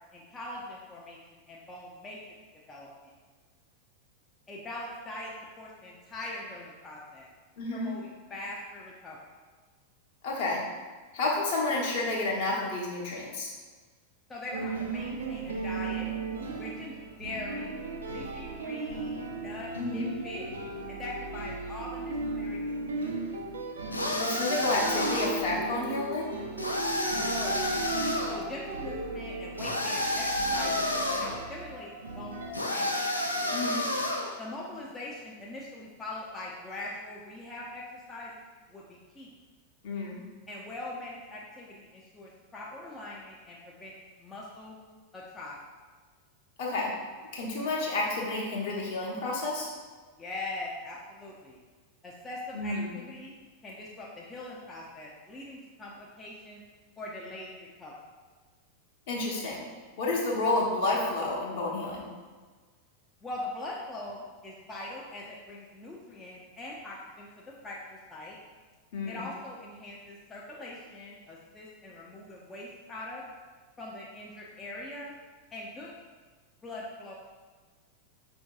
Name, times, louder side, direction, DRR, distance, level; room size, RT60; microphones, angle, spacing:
voice 1, 0.1-2.2 2.7-3.1 4.5-7.3 7.7-9.2 14.3-16.1 16.6-17.8 18.1-20.5 20.9-22.8 27.1-27.7 28.3-30.9 31.2-32.9 34.4-38.4 38.7-39.3 40.5-43.9 44.2-44.8 45.1-45.6 50.2-51.6 52.0-53.4 53.6-56.6 57.0-57.9 63.2-67.3 67.6-68.4 69.1-73.2 73.8-75.1 75.5-75.9 76.6-77.1, left 2 dB, 15° left, -4 dB, 0.5 m, -42 dB
voice 2, 7.6-7.9 10.2-10.6 11.1-13.5 19.8-20.1 24.2-26.3 33.5-33.8 39.8-40.2 46.6-46.9 47.3-49.7 52.5-52.9 59.1-59.6 60.0-62.1 68.9-69.2, left 2 dB, 50° left, -3 dB, 0.9 m, -30 dB
sound 1, 14.5-32.5, right 3 dB, 70° right, 0.5 m, -36 dB
sound 2, 23.9-25.5 26.6-28.4 29.6-31.4 32.5-34.4, left 1 dB, 85° left, 0.4 m, -30 dB
5.0 x 2.6 x 2.3 m, 1.4 s
figure-of-eight pair, 90°, 0 cm